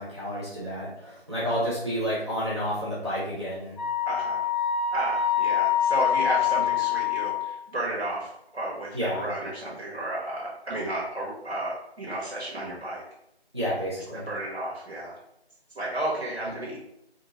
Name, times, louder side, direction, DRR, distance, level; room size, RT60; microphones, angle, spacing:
voice 1, 0.0-3.8 8.9-9.3 13.5-14.3, equal, 25° right, -10 dB, 0.8 m, -30 dB
Wind instrument woodwind instrument, 3.8-7.6, left 9 dB, 45° left, 0.7 m, -25 dB
voice 2, 4.1-4.5 4.9-13.0 14.1-15.2 15.7-16.8, right 1 dB, 90° right, -5 dB, 1.3 m, -32 dB
3.7 x 2.4 x 2.9 m, 0.80 s
figure-of-eight pair, 165°, 32 cm